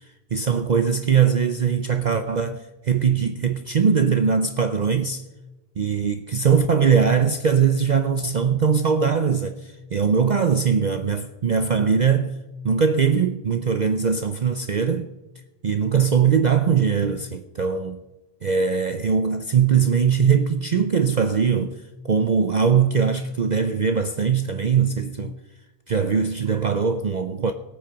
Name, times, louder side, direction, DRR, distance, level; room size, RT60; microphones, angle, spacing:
voice 1, 0.3-5.2 5.8-12.3 12.6-15.1 15.6-18.0 18.4-25.3 25.9-27.5, right 6 dB, 45° right, 0.7 m, -21 dB
16.5 x 9.1 x 5.8 m
omnidirectional pair, 1.2 m